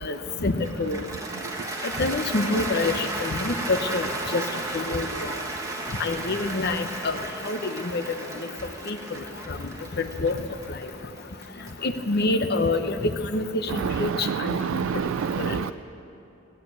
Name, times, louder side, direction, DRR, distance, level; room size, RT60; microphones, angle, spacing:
voice 1, 0.0-1.0 2.0-4.4 4.7-5.3 6.0-8.0 8.9-9.0 9.5-9.6 10.0-10.3 11.8-14.6 15.4-15.6, left 2 dB, 55° left, 9 dB, 0.8 m, -27 dB
Cheering / Applause, 0.6-12.9, right 2 dB, 15° right, 1.4 m, -34 dB
voice 2, 14.1-15.7, right 7 dB, 75° right, 10 dB, 0.3 m, -27 dB
18.5 x 8.5 x 8.6 m, 3.0 s
head